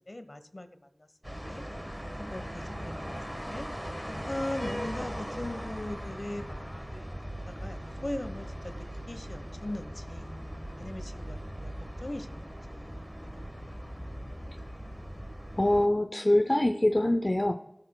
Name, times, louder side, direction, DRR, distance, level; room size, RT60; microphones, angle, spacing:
voice 1, 0.1-0.7 1.0-1.1 1.4-1.6 2.2-3.2 3.5-3.7 4.1-7.1 7.5-8.8 9.1-10.3 10.8-11.7 12.0-13.0 13.6-14.5, left 1 dB, 50° left, 9 dB, 1.0 m, -40 dB
sound 1, 1.2-15.9, equal, 10° right, 1.3 m, -39 dB
voice 2, 15.6-17.5, left 1 dB, 35° left, 4 dB, 0.6 m, -24 dB
19.5 x 6.7 x 2.2 m, 0.91 s
wide cardioid pair, 50°, 0 cm